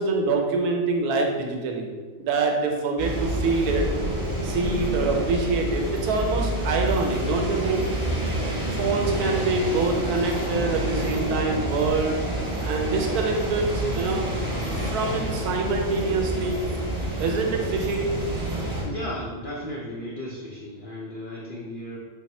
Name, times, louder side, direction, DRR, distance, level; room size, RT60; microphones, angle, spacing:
voice 1, 0.0-1.8 2.2-3.9 4.4-7.8 8.7-12.2 12.6-14.2 14.8-16.6 17.2-18.1, right 3 dB, 90° right, 2 dB, 1.1 m, -25 dB
sound 1, 3.0-18.8, right 1 dB, 20° right, 0.6 m, -28 dB
voice 2, 18.8-22.0, left 1 dB, 85° left, -4 dB, 0.4 m, -35 dB
4.1 x 2.1 x 4.1 m, 1.5 s
omnidirectional pair, 1.6 m